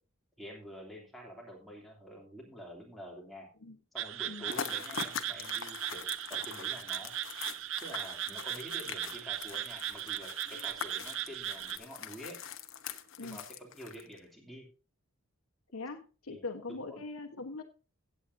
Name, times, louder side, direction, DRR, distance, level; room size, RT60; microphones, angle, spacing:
voice 1, 0.4-3.5 3.9-7.4 7.8-12.3 13.2-14.7 16.3-16.4 16.7-17.0, equal, ahead, -2 dB, 2.9 m, -48 dB
sound 1, 4.0-11.8, right 12 dB, 60° right, 0.5 m, -38 dB
sound 2, 4.4-14.2, left 7 dB, 60° left, 1.0 m, -43 dB
voice 2, 15.7-17.6, left 3 dB, 80° left, 3 dB, 1.2 m, -41 dB
17.0 x 8.3 x 2.7 m, 0.34 s
head